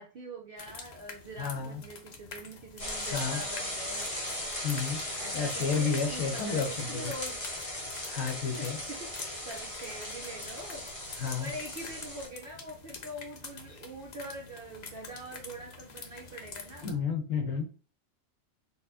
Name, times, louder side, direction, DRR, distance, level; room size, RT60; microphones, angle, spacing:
voice 1, 0.0-4.6 5.1-7.4 8.5-10.9 11.4-16.9, right 1 dB, 60° right, 1 dB, 0.6 m, -44 dB
sound 1, 0.6-16.9, left 4 dB, 85° left, 0.3 m, -47 dB
voice 2, 1.4-1.8 3.1-3.4 4.6-7.1 8.1-8.8 11.2-11.5 16.8-17.7, left 5 dB, 70° left, 4 dB, 1.1 m, -31 dB
sound 2, 2.8-12.3, left 1 dB, 25° left, 1.2 m, -38 dB
4.0 x 2.3 x 2.5 m, 0.38 s
omnidirectional pair, 1.5 m